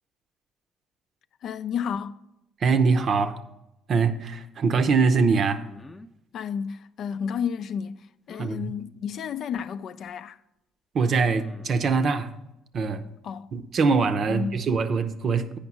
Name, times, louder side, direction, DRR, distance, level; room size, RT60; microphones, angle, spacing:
voice 1, 1.4-2.2 6.3-8.0 8.3-10.4 13.2-13.5 14.3-14.6, left 7 dB, 65° left, 0.4 m, -31 dB
voice 2, 2.6-3.4 3.9-5.6 8.4-8.6 10.9-12.3 12.7-13.0 13.5-15.6, right 4 dB, 55° right, 0.7 m, -23 dB
sound 1, 5.6-6.1 8.3-8.6 10.1-10.2 11.3-11.9, left 2 dB, 25° left, 0.6 m, -45 dB
8.7 x 5.2 x 6.0 m
supercardioid pair, 60°, 0 cm